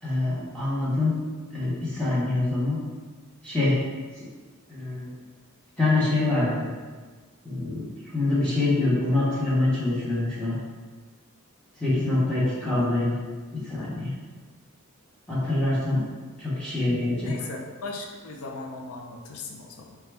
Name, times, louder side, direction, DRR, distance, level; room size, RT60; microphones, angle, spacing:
voice 1, 0.0-1.2 1.5-2.8 3.4-3.8 4.7-5.1 5.8-6.7 7.4-7.9 8.1-10.5 11.8-13.1 13.5-14.1 15.3-16.0 16.4-17.3, left 2 dB, 5° left, -9 dB, 0.9 m, -25 dB
voice 2, 12.0-12.7 17.2-20.0, left 3 dB, 75° left, 1 dB, 0.5 m, -39 dB
5.6 x 2.3 x 3.3 m, 1.4 s
head